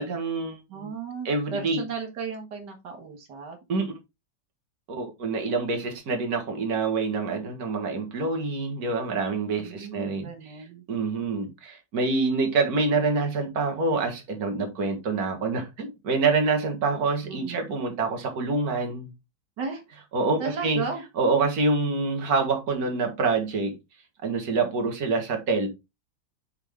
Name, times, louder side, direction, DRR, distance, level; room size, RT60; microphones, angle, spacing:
voice 1, 0.0-0.9 1.3-1.8 3.7-3.9 4.9-10.3 10.9-19.1 20.1-20.8 21.2-23.7 24.2-25.7, right 3 dB, 60° right, 2.0 m, -26 dB
voice 2, 0.7-3.6 9.6-10.8 17.2-17.7 19.6-19.8 20.4-21.0, right 5 dB, 80° right, 1.9 m, -35 dB
5.8 x 5.7 x 3.6 m
omnidirectional pair, 1.8 m